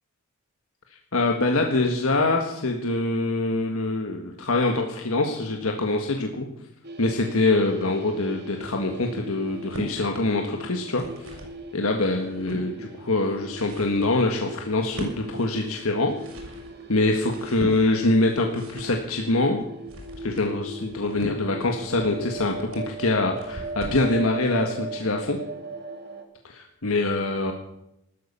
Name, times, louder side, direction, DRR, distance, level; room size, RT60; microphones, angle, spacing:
voice 1, 1.1-6.5 7.0-11.0 11.7-16.1 16.9-19.6 20.2-25.4 26.4-27.5, left 2 dB, 75° left, 3 dB, 1.6 m, -24 dB
sound 1, 6.8-26.2, right 2 dB, 50° right, 2.3 m, -39 dB
sound 2, 9.5-9.9 10.7-11.6 12.0-12.7 13.3-24.1, equal, 70° right, 5.5 m, -40 dB
14.0 x 12.5 x 6.9 m, 0.85 s
head